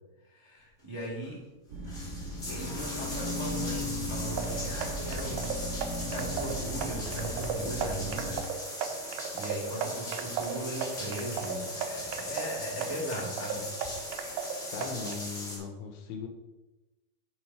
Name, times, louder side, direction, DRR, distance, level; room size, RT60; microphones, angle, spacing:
voice 1, 0.2-1.4 2.5-5.7 6.0-8.4 9.0-13.7, right 1 dB, 10° right, -5 dB, 1.6 m, -38 dB
sound 1, 1.2-1.3 1.7-15.6, left 1 dB, 25° left, 1.6 m, -40 dB
sound 2, 1.7-8.4, left 1 dB, 55° right, 4.7 m, -37 dB
sound 3, 4.3-15.2, right 6 dB, 85° right, 2.1 m, -37 dB
voice 2, 14.7-16.3, left 5 dB, 75° left, 5 dB, 2.8 m, -38 dB
10.5 x 5.1 x 4.8 m, 1.1 s
omnidirectional pair, 4.8 m